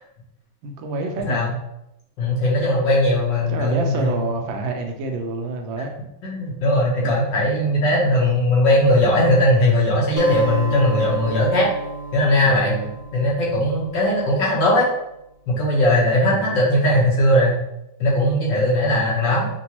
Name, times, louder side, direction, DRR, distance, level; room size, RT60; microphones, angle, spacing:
voice 1, 0.6-1.5 3.5-5.9 7.0-7.2 12.4-13.0 16.3-16.6 18.8-19.2, right 3 dB, 75° right, 3 dB, 1.3 m, -28 dB
voice 2, 2.2-4.2 6.2-11.7 12.1-12.7 13.1-14.9 15.5-17.6 18.0-19.5, left 1 dB, 65° left, -4 dB, 1.7 m, -19 dB
Acoustic guitar, 10.2-14.6, right 3 dB, 55° right, 0.4 m, -33 dB
6.0 x 2.3 x 2.9 m, 0.84 s
omnidirectional pair, 2.2 m